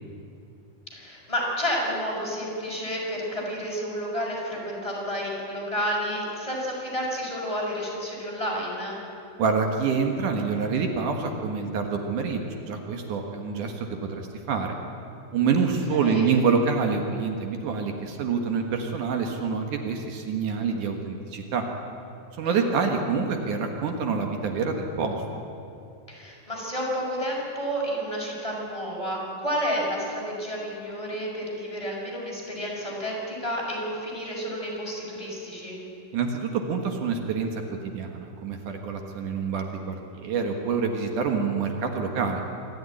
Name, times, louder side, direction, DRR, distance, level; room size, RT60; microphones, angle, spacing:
voice 1, 0.9-9.0 15.9-16.2 22.4-22.6 26.1-35.8, equal, 10° left, -4 dB, 6.2 m, -30 dB
voice 2, 9.4-14.7 15.3-21.7 22.4-25.2 36.1-42.4, right 5 dB, 75° right, 3 dB, 3.1 m, -27 dB
26.0 x 14.0 x 9.9 m, 2.7 s
omnidirectional pair, 3.6 m